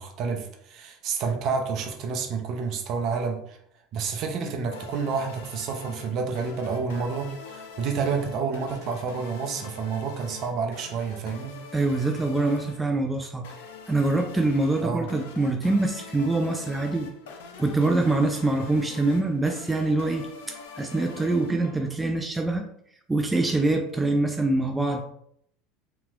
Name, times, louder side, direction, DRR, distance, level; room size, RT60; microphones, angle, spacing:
voice 1, 0.0-3.6 3.9-11.6 14.8-15.1, right 5 dB, 55° right, 3 dB, 0.6 m, -29 dB
sound 1, 4.7-22.2, left 5 dB, 75° left, 0.5 m, -44 dB
voice 2, 11.7-13.4 13.9-17.1 17.6-22.7 23.1-25.0, right 2 dB, 10° right, 4 dB, 0.4 m, -24 dB
2.9 x 2.8 x 2.5 m, 0.69 s
hypercardioid pair, 85°, 0 cm